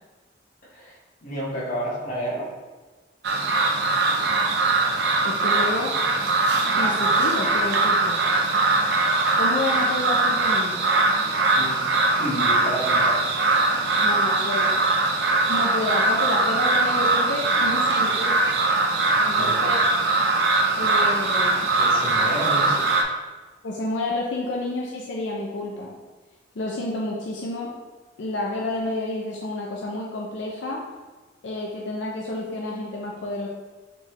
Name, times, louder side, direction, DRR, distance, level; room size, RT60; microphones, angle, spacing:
voice 1, 0.7-2.5 11.6-11.9 12.2-13.3 13.7-13.8 19.4-19.6 21.8-23.0, right 1 dB, 50° left, -7 dB, 1.5 m, -31 dB
sound 1, 3.2-23.0, right 3 dB, 65° right, 0.5 m, -21 dB
voice 2, 3.8-4.4 5.2-6.0 6.7-8.2 9.4-10.9 14.0-14.7 15.5-18.5 19.2-19.8 20.8-21.7 23.6-25.9 26.6-27.7 28.2-30.8 31.4-33.5, left 2 dB, 85° left, -2 dB, 0.5 m, -30 dB
4.2 x 3.3 x 3.1 m, 1.3 s
head